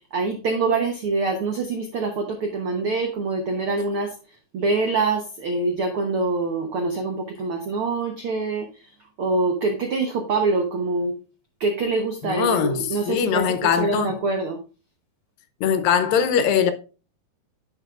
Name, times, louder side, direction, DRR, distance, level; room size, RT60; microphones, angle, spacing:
voice 1, 0.1-4.1 4.5-8.7 9.2-11.1 11.6-13.5 13.8-14.6, right 3 dB, 85° right, 1.2 m, -25 dB
voice 2, 12.2-14.2 15.6-16.7, left 7 dB, 80° left, 2.6 m, -21 dB
10.0 x 7.3 x 2.4 m
omnidirectional pair, 4.1 m